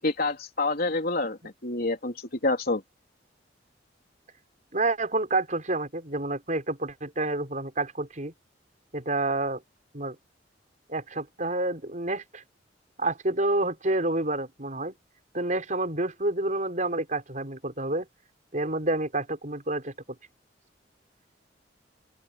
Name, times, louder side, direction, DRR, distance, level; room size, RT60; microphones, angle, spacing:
voice 1, 0.0-2.1 2.4-2.8, left 2 dB, 55° left, 3.8 m, -27 dB
voice 2, 4.7-8.3 8.9-9.6 9.9-10.2 10.9-12.4 13.0-15.0 15.3-18.1 18.5-19.9, right 2 dB, 45° right, 6.1 m, -28 dB
open air
head